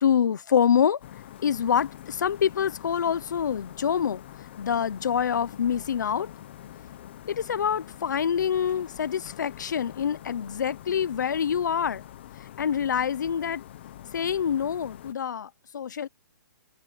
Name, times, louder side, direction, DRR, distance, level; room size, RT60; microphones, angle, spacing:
voice 1, 0.0-1.0 1.4-4.2 4.6-6.3 7.3-12.0 12.6-13.6 14.1-16.1, left 8 dB, 65° left, 0.8 m, -26 dB
sound 1, 1.0-15.1, left 12 dB, 35° left, 1.1 m, -45 dB
hypercardioid pair, 175°, 11 cm